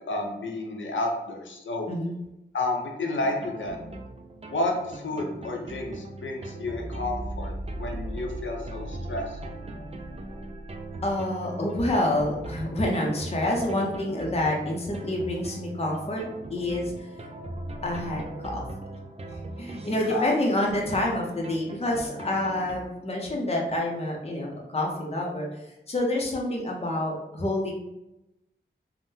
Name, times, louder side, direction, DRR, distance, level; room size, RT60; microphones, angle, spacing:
voice 1, 0.1-1.9 2.5-3.8 4.5-9.4 20.0-20.3, left 2 dB, 80° left, 1 dB, 0.6 m, -31 dB
sound 1, 3.2-22.9, right 1 dB, 35° right, 0.4 m, -39 dB
voice 2, 11.0-16.2 16.5-17.1 17.8-18.6 19.3-25.5 25.9-27.7, left 1 dB, 30° left, -1 dB, 0.6 m, -28 dB
3.6 x 2.1 x 2.7 m, 0.92 s
wide cardioid pair, 80°, 19 cm